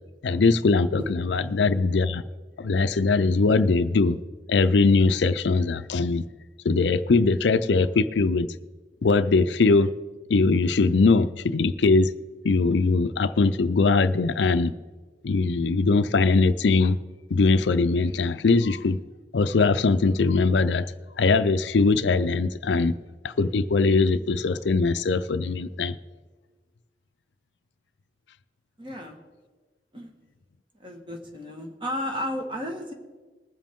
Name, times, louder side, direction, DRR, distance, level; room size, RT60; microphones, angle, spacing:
voice 1, 0.2-2.2 2.6-4.2 4.5-6.2 6.6-8.5 9.0-9.9 10.3-12.1 12.4-14.7 15.2-17.0 17.3-19.0 19.3-20.9 21.2-22.9 23.2-26.0, left 3 dB, 75° left, 13 dB, 0.5 m, -21 dB
voice 2, 28.8-29.2 29.9-30.1 30.8-32.9, equal, 30° right, 3 dB, 1.5 m, -33 dB
20.5 x 7.5 x 3.6 m, 1.3 s
head